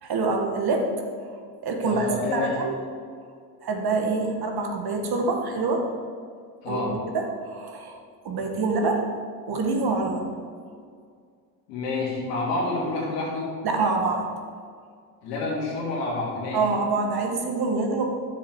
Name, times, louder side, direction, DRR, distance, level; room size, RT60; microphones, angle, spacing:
voice 1, 0.0-0.9 1.6-2.7 3.6-5.9 6.7-8.0 8.2-9.0 9.5-10.3 13.6-14.3 16.5-18.0, right 3 dB, 50° right, 2 dB, 1.9 m, -26 dB
voice 2, 1.9-2.6 6.6-7.0 11.7-13.5 15.2-16.7, left 2 dB, 85° left, -4 dB, 2.9 m, -28 dB
10.0 x 7.2 x 4.8 m, 2.1 s
hypercardioid pair, 60°, 47 cm